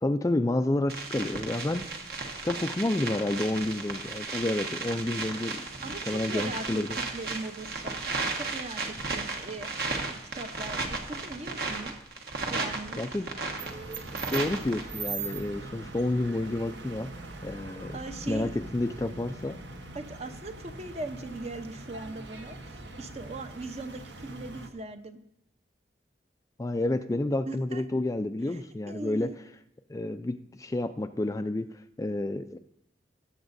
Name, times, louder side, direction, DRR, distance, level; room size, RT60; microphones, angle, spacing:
voice 1, 0.0-1.9 2.4-7.0 13.0-13.3 14.3-17.1 17.4-18.0 18.3-19.6 26.6-29.3 29.9-31.7 32.0-32.6, left 2 dB, 20° left, 8 dB, 0.3 m, -30 dB
sound 1, 0.9-14.8, right 3 dB, 60° right, 1.3 m, -35 dB
voice 2, 5.8-8.0 8.3-11.9 12.5-13.2 17.9-18.5 19.9-25.2 27.5-27.8 28.5-29.4, right 2 dB, 35° right, 8 dB, 0.7 m, -40 dB
sound 2, 13.6-24.7, right 3 dB, 80° right, 1.1 m, -41 dB
18.5 x 8.0 x 2.6 m, 0.79 s
head